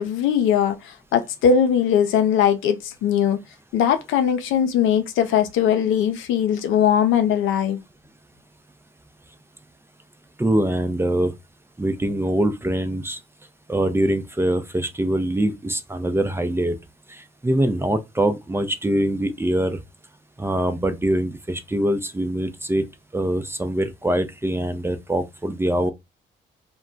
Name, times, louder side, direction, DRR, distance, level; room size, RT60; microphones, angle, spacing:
voice 1, 0.0-3.4 3.7-7.8, left 8 dB, 75° left, 0.5 m, -20 dB
voice 2, 10.4-11.3 11.8-13.2 13.7-16.8 17.1-19.8 20.4-22.8 23.1-25.9, right 1 dB, 10° right, 0.5 m, -23 dB
2.2 x 2.1 x 3.7 m
supercardioid pair, 55°, 20 cm